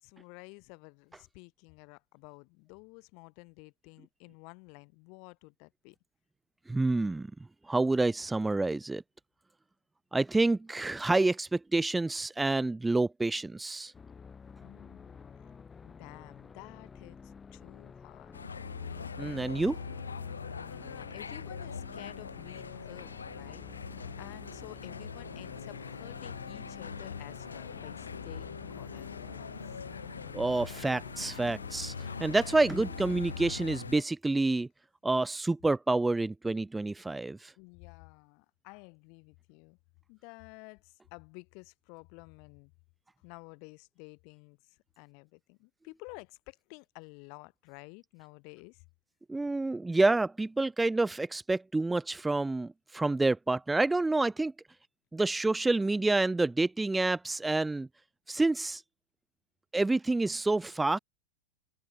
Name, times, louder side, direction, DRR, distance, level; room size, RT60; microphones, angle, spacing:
voice 1, 0.0-6.0 14.6-15.6 15.8-18.4 20.7-23.7 24.2-29.8 37.6-39.8 40.1-42.7 43.2-48.8, left 35 dB, 45° left, 5.2 m, -51 dB
voice 2, 6.7-7.3 7.7-9.0 10.1-13.9 19.2-19.8 30.3-34.7 35.0-37.5 49.3-54.5 55.1-57.9 58.3-58.8 59.7-61.0, right 2 dB, 10° right, 0.4 m, -28 dB
sound 1, 13.9-33.7, left 5 dB, 15° left, 5.7 m, -51 dB
sound 2, 18.3-34.0, left 5 dB, 75° left, 4.6 m, -42 dB
open air
figure-of-eight pair, 90°, 0 cm